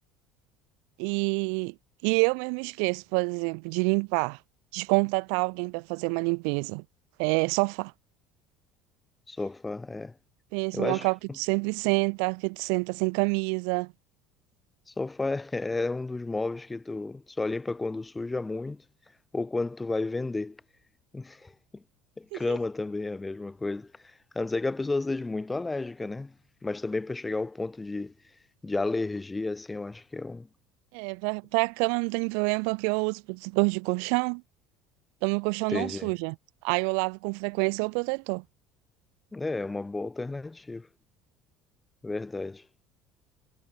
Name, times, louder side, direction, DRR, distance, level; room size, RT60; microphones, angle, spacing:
voice 1, 1.0-1.7 2.0-4.4 4.7-6.8 7.2-7.9 10.5-13.9 22.3-22.6 30.9-34.4 35.2-36.4 36.6-38.4, right 40 dB or more, 75° right, 0.5 m, -27 dB
voice 2, 9.3-10.1 10.7-11.1 14.9-18.8 19.3-20.6 21.1-21.8 22.2-23.9 24.3-26.3 26.6-28.1 28.6-30.5 35.7-36.1 39.3-40.9 42.0-42.6, left 3 dB, 10° left, 1.2 m, -32 dB
cardioid pair, 180°, 0 cm